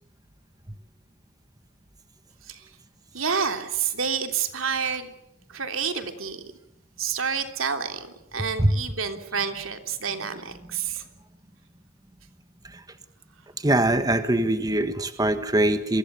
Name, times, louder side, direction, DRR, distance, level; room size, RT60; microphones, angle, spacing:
voice 1, 3.1-5.1 5.5-6.4 7.0-8.1 8.3-11.0, right 6 dB, 80° right, 6 dB, 3.2 m, -29 dB
voice 2, 13.6-16.0, right 1 dB, 20° right, 9 dB, 1.5 m, -22 dB
27.5 x 24.0 x 7.0 m, 0.82 s
head